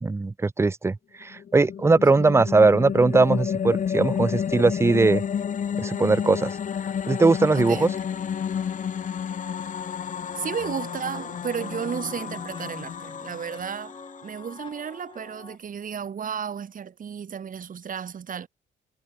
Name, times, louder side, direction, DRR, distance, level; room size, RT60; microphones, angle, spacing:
voice 1, 0.0-5.2 5.8-6.6 7.1-7.9, right 3 dB, 15° right, 0.5 m, -20 dB
sound 1, 1.3-14.7, left 8 dB, 40° left, 0.7 m, -30 dB
voice 2, 2.1-2.5 5.9-6.0 7.5-7.9 10.4-14.0 14.2-18.5, right 7 dB, 45° right, 1.4 m, -33 dB
sound 2, 7.6-15.6, left 3 dB, 25° left, 2.8 m, -46 dB
cardioid pair, 90°, 20 cm